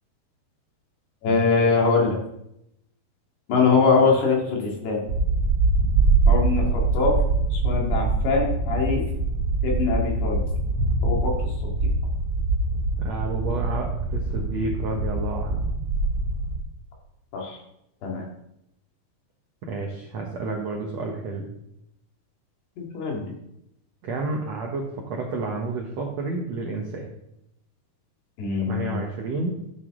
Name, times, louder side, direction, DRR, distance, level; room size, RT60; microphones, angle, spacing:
voice 1, 1.2-2.2 3.5-5.0 6.3-7.1 7.5-9.0 9.6-10.4 11.0-11.3 11.6-11.7 17.3-17.6 18.0-18.2 22.8-23.2 28.4-29.0, left 4 dB, 75° left, -1 dB, 4.3 m, -23 dB
sound 1, 5.1-16.6, right 3 dB, 45° right, 2.3 m, -24 dB
voice 2, 13.0-15.6 19.7-21.5 24.0-24.8 25.1-27.1 28.6-29.6, right 3 dB, 90° right, 0 dB, 1.4 m, -30 dB
12.0 x 8.1 x 3.7 m, 0.81 s
omnidirectional pair, 4.8 m